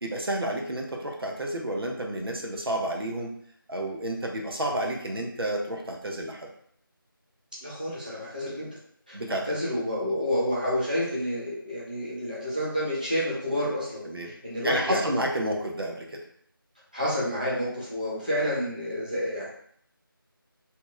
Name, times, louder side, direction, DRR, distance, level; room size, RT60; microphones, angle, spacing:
voice 1, 0.0-3.3 3.7-6.5 9.1-9.6 14.0-14.3 14.6-16.2, right 1 dB, 85° right, 0 dB, 0.8 m, -30 dB
voice 2, 7.6-8.7 9.1-15.0 16.9-19.6, equal, 20° right, -8 dB, 0.6 m, -29 dB
2.9 x 2.1 x 3.5 m, 0.64 s
figure-of-eight pair, 180°, 12 cm